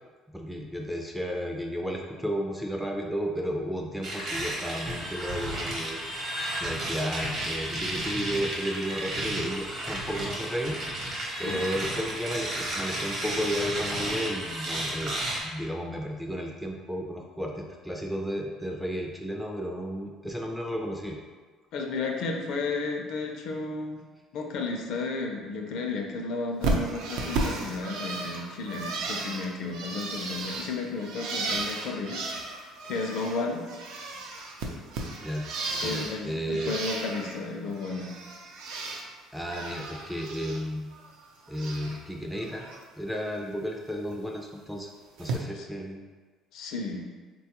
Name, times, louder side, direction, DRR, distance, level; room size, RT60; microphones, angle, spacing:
voice 1, 0.3-6.0 6.3-10.8 11.4-21.2 35.2-35.5 35.8-36.7 39.3-40.9 41.5-42.7 43.0-44.9 45.2-46.1, equal, ahead, 0 dB, 0.3 m, -33 dB
sound 1, 4.0-15.4, right 1 dB, 40° right, 0.7 m, -33 dB
voice 2, 21.7-24.0 24.3-33.7 35.8-38.1 45.5-45.7 46.5-47.0, left 3 dB, 65° left, 2 dB, 0.4 m, -33 dB
Bird, 26.6-33.4 33.7-36.2 36.5-37.4 37.7-39.0 39.4-40.6 40.9-42.0 42.4-42.8 44.1-44.2 45.2-45.4, right 3 dB, 80° right, 0.5 m, -34 dB
3.8 x 2.3 x 2.8 m, 1.4 s
cardioid pair, 145°, 0 cm